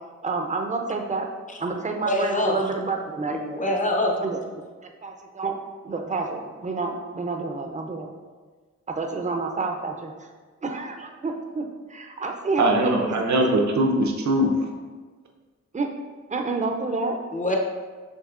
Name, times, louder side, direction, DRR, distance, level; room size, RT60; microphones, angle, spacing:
voice 1, 0.2-1.3 1.6-3.4 4.2-4.4 4.8-5.5 5.8-8.1 8.9-10.1 10.6-13.1 15.7-15.9 16.3-17.2, right 3 dB, 25° right, 3 dB, 0.5 m, -29 dB
voice 2, 2.1-2.6 3.3-4.2 17.3-17.6, left 1 dB, 25° left, 1 dB, 0.7 m, -24 dB
voice 3, 12.6-14.7, right 1 dB, 75° right, 2 dB, 0.7 m, -21 dB
6.4 x 2.9 x 2.4 m, 1.4 s
cardioid pair, 70°, 29 cm